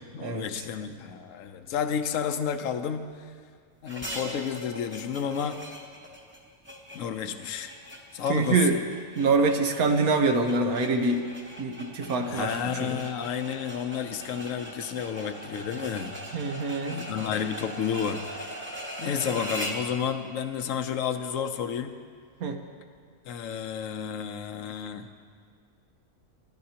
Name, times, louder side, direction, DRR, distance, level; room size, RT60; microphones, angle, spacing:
voice 1, 0.1-3.0 3.8-5.6 6.9-7.8 8.1-8.7 12.3-16.2 16.9-18.6 19.0-21.9 23.2-25.0, left 8 dB, 65° left, 8 dB, 1.1 m, -31 dB
sound 1, 3.9-19.9, equal, 10° right, 1.2 m, -40 dB
voice 2, 8.3-8.8 9.2-11.2 11.6-13.0 16.3-17.0 22.4-22.6, right 3 dB, 70° right, 5 dB, 1.5 m, -25 dB
22.5 x 13.0 x 2.9 m, 2.1 s
omnidirectional pair, 1.6 m